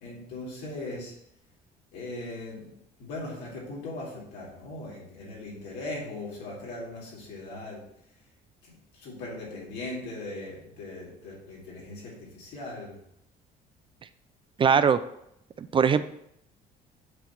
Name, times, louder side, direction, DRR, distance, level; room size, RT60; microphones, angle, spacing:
voice 1, 0.0-1.1 1.9-2.7 3.0-7.8 8.6-12.9, left 2 dB, 85° left, -4 dB, 2.6 m, -39 dB
voice 2, 14.6-15.0 15.6-16.0, right 6 dB, 30° right, 12 dB, 0.3 m, -21 dB
8.1 x 3.1 x 5.8 m, 0.75 s
cardioid pair, 110°, 17 cm